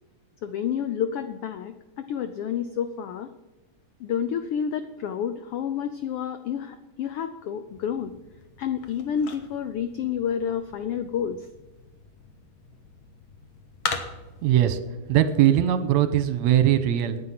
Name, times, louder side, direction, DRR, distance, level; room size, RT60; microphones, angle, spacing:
voice 1, 0.4-3.3 4.0-8.1 8.6-11.5, left 8 dB, 85° left, 11 dB, 1.2 m, -29 dB
sound 1, 7.7-14.5, left 5 dB, 60° left, 2.2 m, -39 dB
voice 2, 14.4-14.8 15.1-17.2, right 11 dB, 75° right, 11 dB, 2.1 m, -20 dB
18.0 x 9.7 x 5.8 m, 1.1 s
omnidirectional pair, 3.4 m